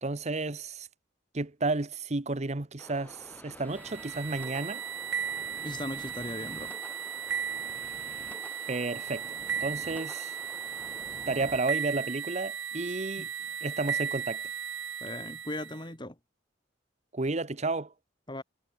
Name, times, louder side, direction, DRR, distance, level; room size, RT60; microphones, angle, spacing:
voice 1, 0.0-0.9 1.3-4.8 8.7-9.3 9.6-10.3 11.3-13.3 13.6-14.4 17.1-17.9, right 3 dB, 35° right, 1.0 m, -32 dB
sound 1, 2.8-11.6, left 1 dB, 10° left, 2.8 m, -49 dB
sound 2, 3.7-15.8, right 8 dB, 80° right, 3.1 m, -36 dB
voice 2, 5.6-6.7 13.2-13.3 15.0-16.2 18.3-18.4, left 1 dB, 25° left, 3.3 m, -38 dB
head